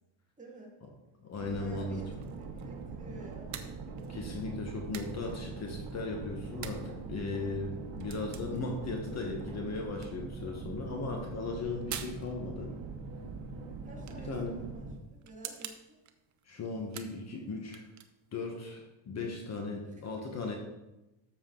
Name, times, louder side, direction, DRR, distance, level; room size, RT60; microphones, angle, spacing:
voice 1, 0.4-0.8 1.6-3.5 13.8-16.0 19.9-20.0, right 2 dB, 15° right, -2 dB, 2.3 m, -51 dB
voice 2, 1.2-2.0 4.1-12.8 14.3-14.6 16.5-17.9 18.3-20.6, left 3 dB, 30° left, 2 dB, 1.4 m, -37 dB
sound 1, 1.4-15.0, right 4 dB, 55° right, 1.6 m, -42 dB
sound 2, 2.1-18.5, right 9 dB, 35° right, 0.9 m, -50 dB
13.0 x 7.0 x 4.0 m, 1.0 s
cardioid pair, 145°, 49 cm